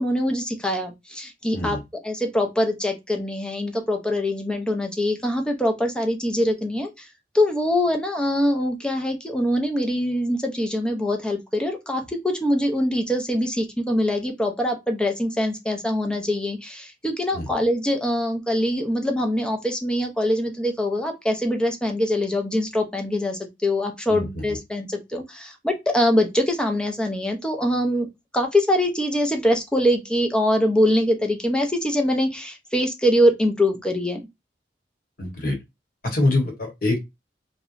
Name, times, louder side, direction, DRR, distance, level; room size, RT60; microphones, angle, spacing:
voice 1, 0.0-1.8 2.0-7.1 7.3-28.1 28.3-34.2, left 1 dB, 5° left, 4 dB, 0.5 m, -23 dB
voice 2, 24.1-24.6 35.2-35.6 36.0-37.0, left 2 dB, 55° left, 2 dB, 1.0 m, -25 dB
2.7 x 2.1 x 2.4 m, 0.21 s
head